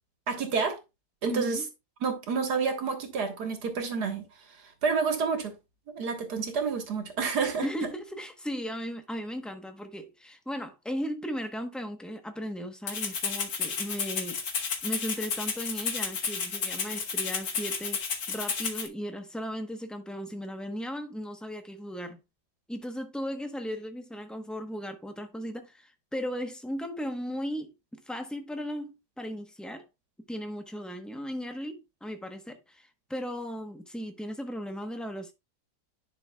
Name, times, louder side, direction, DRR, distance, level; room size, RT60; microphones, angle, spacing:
voice 1, 0.3-0.8 1.2-1.6 2.0-4.3 4.8-5.5 5.9-7.7, right 5 dB, 75° right, 2.0 m, -29 dB
voice 2, 1.3-1.7 7.6-14.4 14.8-18.0 18.3-22.2 22.7-29.9 30.3-35.3, equal, ahead, 0.6 m, -36 dB
Rattle (instrument), 12.9-18.9, left 5 dB, 65° left, 1.6 m, -32 dB
10.5 x 6.0 x 2.3 m
omnidirectional pair, 1.7 m